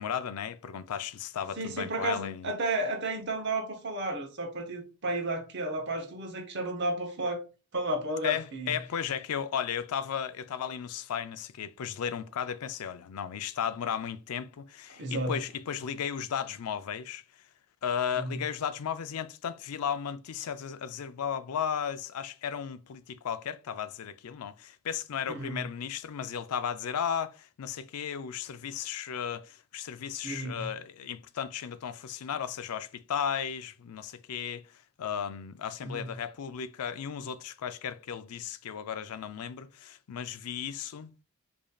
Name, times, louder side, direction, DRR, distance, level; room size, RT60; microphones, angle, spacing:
voice 1, 0.0-2.5 8.2-17.2 17.8-34.6 35.0-41.1, left 8 dB, 85° left, 0.4 m, -35 dB
voice 2, 1.6-7.4 7.7-8.7 14.9-15.3 18.2-18.4 25.3-25.6 30.2-30.7 35.8-36.1, right 1 dB, 50° right, 0.9 m, -32 dB
4.9 x 2.7 x 2.3 m
head